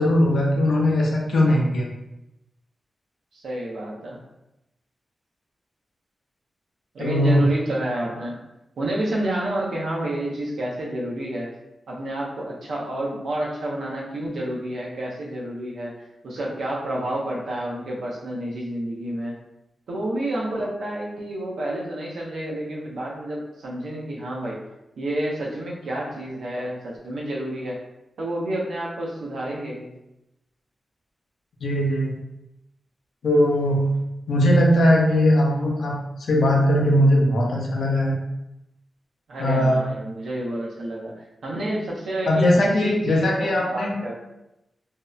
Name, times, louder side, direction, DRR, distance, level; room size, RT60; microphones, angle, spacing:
voice 1, 0.0-1.9 7.0-7.4 31.6-32.2 33.2-34.0 34.3-38.2 39.4-39.8 42.3-43.9, equal, 70° left, -2 dB, 0.5 m, -19 dB
voice 2, 3.3-4.2 6.9-8.4 8.8-11.5 11.9-16.0 16.2-19.4 19.9-24.6 25.0-27.8 28.2-29.9 39.3-42.5 42.8-44.2, right 1 dB, 85° right, -3 dB, 0.6 m, -29 dB
2.7 x 2.0 x 2.3 m, 0.90 s
wide cardioid pair, 180°, 0 cm